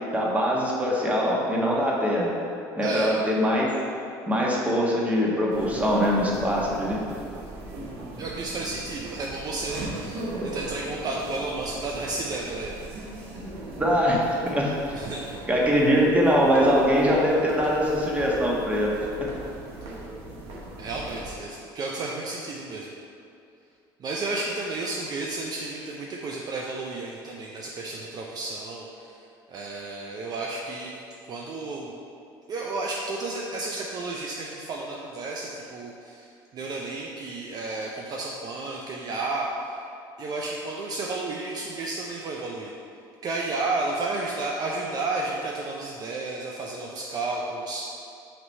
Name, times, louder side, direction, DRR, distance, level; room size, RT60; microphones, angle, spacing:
voice 1, 0.1-2.3 2.8-3.7 4.3-7.0 13.8-14.7 15.5-18.9 19.2-19.3, equal, 15° right, -4 dB, 1.4 m, -22 dB
voice 2, 2.8-3.2 8.2-12.8 14.9-15.4 20.8-22.9 24.0-29.1 29.5-30.9 31.3-31.9 32.5-39.8 40.2-42.7 43.2-47.8, right 3 dB, 45° right, -2 dB, 0.6 m, -32 dB
sound 1, 5.5-21.4, right 1 dB, 75° right, 1.2 m, -39 dB
5.9 x 3.1 x 5.4 m, 2.6 s
supercardioid pair, 90°, 9 cm